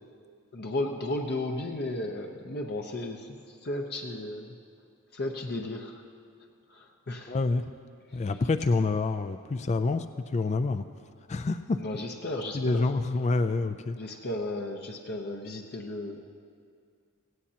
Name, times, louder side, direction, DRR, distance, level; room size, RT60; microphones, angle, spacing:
voice 1, 0.5-4.6 5.1-6.0 6.7-7.4 8.1-8.3 11.8-12.9 14.0-16.2, left 1 dB, 50° left, 1 dB, 0.8 m, -34 dB
voice 2, 7.3-7.7 8.1-10.8 11.3-11.8 12.5-14.0, left 3 dB, 30° left, 10 dB, 0.4 m, -27 dB
17.5 x 16.5 x 2.9 m, 2.2 s
head